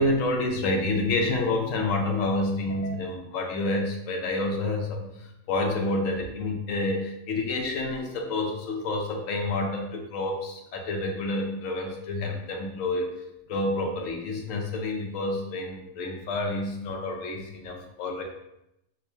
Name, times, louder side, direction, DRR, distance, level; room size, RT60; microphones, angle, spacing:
voice 1, 0.0-13.1 13.5-18.2, left 2 dB, 70° left, 2 dB, 1.0 m, -28 dB
4.6 x 2.1 x 2.6 m, 0.84 s
omnidirectional pair, 1.5 m